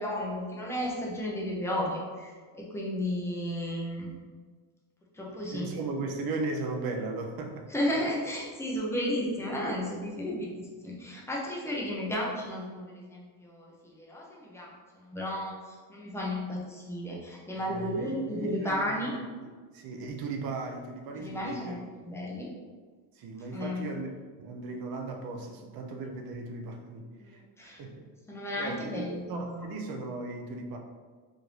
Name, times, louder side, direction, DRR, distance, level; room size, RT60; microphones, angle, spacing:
voice 1, 0.0-4.1 5.1-5.7 7.7-14.7 15.0-19.1 21.2-22.5 23.5-23.9 27.2-27.8 28.3-29.7, left 1 dB, 5° left, -4 dB, 0.4 m, -33 dB
voice 2, 5.3-7.7 17.5-19.1 19.4-21.8 23.1-24.1 24.4-28.1 28.6-30.8, right 3 dB, 45° right, 3 dB, 0.5 m, -37 dB
4.9 x 2.5 x 3.0 m, 1.5 s
cardioid pair, 170°, 50 cm